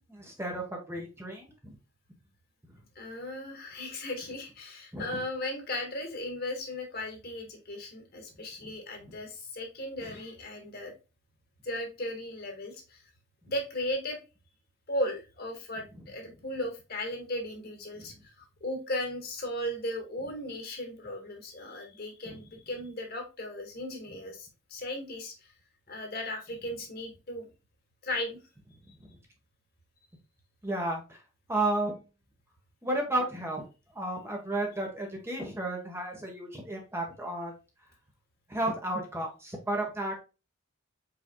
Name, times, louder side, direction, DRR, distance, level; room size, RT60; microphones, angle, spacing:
voice 1, 0.1-1.8 4.9-5.2 9.1-9.2 10.1-10.2 22.2-22.3 29.0-29.1 30.6-31.2 31.5-31.9 32.8-33.6 33.9-37.5 38.5-40.2, right 1 dB, 15° right, 1 dB, 1.1 m, -33 dB
voice 2, 2.9-10.9 11.6-13.0 13.5-14.2 14.9-25.5 25.9-27.5 28.0-28.4, left 1 dB, 50° left, 2 dB, 1.7 m, -36 dB
4.9 x 4.5 x 2.2 m, 0.29 s
head